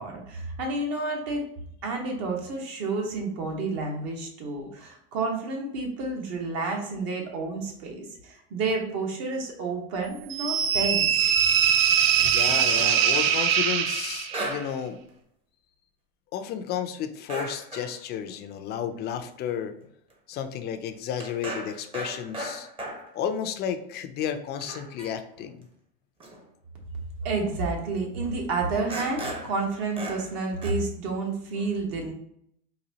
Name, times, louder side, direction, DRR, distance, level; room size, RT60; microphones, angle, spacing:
voice 1, 0.0-1.5 1.8-11.3 12.1-12.3 27.2-32.1, right 3 dB, 55° right, 1 dB, 1.2 m, -30 dB
sound 1, 10.3-14.5, right 8 dB, 80° right, 0.5 m, -22 dB
voice 2, 11.9-15.0 16.3-19.7 20.3-22.7 23.1-25.7, left 8 dB, 35° left, 8 dB, 0.4 m, -32 dB
sound 2, 12.6-13.7 14.3-14.8 15.1-15.2 17.3-18.0 18.3-18.4 18.9-19.2 19.8-19.9 20.1-20.3 20.6-23.1 23.8-23.9 24.3-24.4 24.6-25.4 26.2-26.4 27.3-27.4 28.3-28.4 28.9-29.6 30.0-30.4 30.6-30.7, right 1 dB, 20° right, 0.8 m, -37 dB
4.0 x 2.6 x 2.9 m, 0.73 s
supercardioid pair, 115°, 29 cm